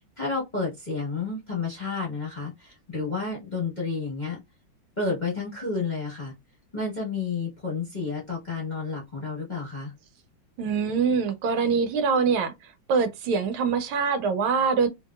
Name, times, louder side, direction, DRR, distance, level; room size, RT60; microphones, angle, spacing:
voice 1, 0.2-4.4 5.0-6.3 6.7-9.9, left 4 dB, 30° left, 0.9 m, -31 dB
voice 2, 10.6-12.5 12.9-14.9, right 5 dB, 85° right, 1.5 m, -24 dB
3.2 x 2.8 x 2.3 m
omnidirectional pair, 2.3 m